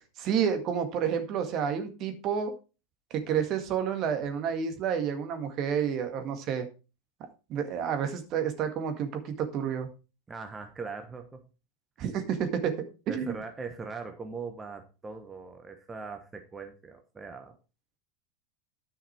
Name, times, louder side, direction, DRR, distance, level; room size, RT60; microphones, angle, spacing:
voice 1, 0.2-2.5 3.1-6.7 7.5-9.9 12.0-12.7 13.1-13.4, right 8 dB, 45° right, 7 dB, 1.9 m, -29 dB
voice 2, 10.3-11.5 13.1-17.5, right 4 dB, 20° right, 5 dB, 1.3 m, -40 dB
10.0 x 5.8 x 4.6 m, 0.32 s
hypercardioid pair, 85°, 0 cm